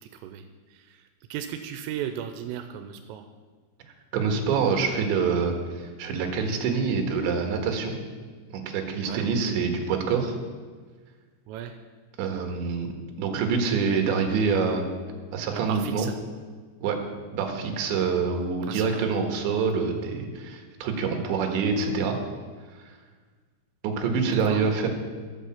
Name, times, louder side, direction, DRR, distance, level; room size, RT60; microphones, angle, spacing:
voice 1, 0.1-0.4 0.7-1.0 1.3-3.2 9.0-9.3 11.5-11.8 15.5-16.1 18.7-19.2 24.3-24.6, right 9 dB, 90° right, 7 dB, 3.2 m, -35 dB
voice 2, 4.1-8.0 8.5-10.3 12.2-12.9 13.2-14.9 15.3-16.1 16.8-17.0 17.3-22.2 22.8-22.9 23.8-24.9, right 5 dB, 70° right, 3 dB, 3.6 m, -26 dB
12.5 x 8.1 x 7.3 m, 1.5 s
omnidirectional pair, 5.8 m